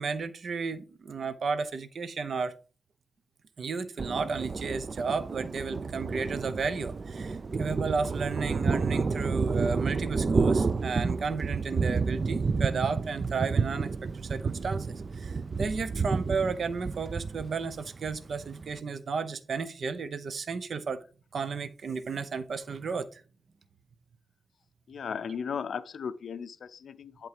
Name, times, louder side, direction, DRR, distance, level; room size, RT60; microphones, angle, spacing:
voice 1, 0.0-2.6 3.6-14.9 15.1-21.0 21.3-23.2, right 5 dB, 55° right, 0.8 m, -33 dB
Thunder, 4.0-18.8, right 4 dB, 35° right, 0.4 m, -30 dB
voice 2, 24.9-27.3, left 6 dB, 70° left, 0.5 m, -36 dB
11.0 x 3.7 x 4.9 m
wide cardioid pair, 150°, 0 cm